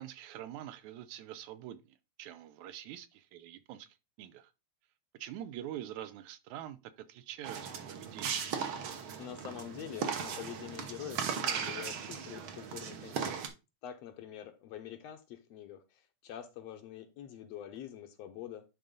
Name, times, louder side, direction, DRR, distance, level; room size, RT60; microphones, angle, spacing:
voice 1, 0.0-3.9 4.2-4.5 5.2-6.8 7.1-8.4, right 12 dB, 80° right, 2.1 m, -45 dB
sound 1, 7.4-13.5, right 7 dB, 60° right, 1.4 m, -37 dB
voice 2, 9.2-13.3 13.8-18.6, left 10 dB, 75° left, 1.7 m, -45 dB
10.5 x 3.9 x 3.8 m
omnidirectional pair, 3.4 m